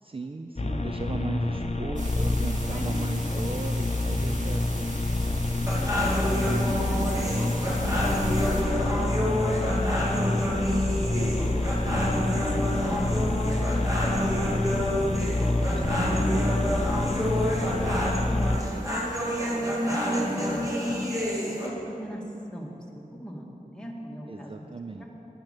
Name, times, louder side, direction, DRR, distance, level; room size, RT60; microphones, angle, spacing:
voice 1, 0.0-4.7 24.3-25.0, right 3 dB, 40° right, 5 dB, 0.5 m, -37 dB
sound 1, 0.6-18.6, left 2 dB, 45° left, 0.8 m, -27 dB
sound 2, 2.0-8.6, right 1 dB, 55° right, 2.0 m, -41 dB
voice 2, 2.7-3.4 5.8-9.2 10.0-12.6 12.8-13.3 14.5-15.1 15.4-17.2 17.8-18.6 19.5-21.0 21.4-22.2 22.5-24.7 25.0-25.1, equal, 5° left, -2 dB, 2.0 m, -39 dB
sound 3, 5.7-21.7, equal, 20° right, 2.4 m, -28 dB
10.0 x 10.0 x 6.7 m, 3.0 s
wide cardioid pair, 65°, 15 cm